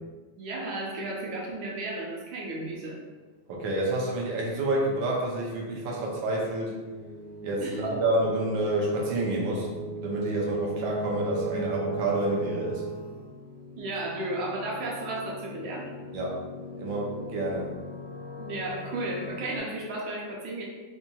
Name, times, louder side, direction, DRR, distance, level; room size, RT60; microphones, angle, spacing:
voice 1, 0.4-3.0 7.6-7.8 13.8-15.9 18.4-20.6, right 2 dB, 90° right, -3 dB, 1.5 m, -34 dB
voice 2, 3.5-6.7 7.4-9.7 10.0-12.8 16.1-16.4 16.8-17.7, right 1 dB, 75° right, -3 dB, 1.4 m, -28 dB
sound 1, 4.9-19.6, right 2 dB, 70° left, 1.5 m, -39 dB
4.2 x 2.6 x 2.3 m, 1.3 s
omnidirectional pair, 2.2 m